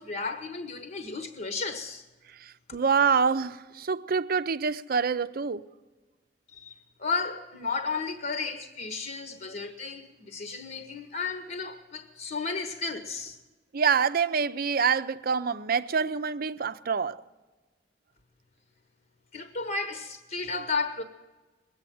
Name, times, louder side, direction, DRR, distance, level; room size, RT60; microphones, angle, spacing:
voice 1, 0.0-2.1 2.7-2.8 6.5-13.4 19.3-21.0, left 4 dB, 50° left, 1.1 m, -33 dB
voice 2, 2.4-5.7 13.7-17.2, right 6 dB, 55° right, 0.6 m, -26 dB
21.0 x 8.8 x 7.7 m
head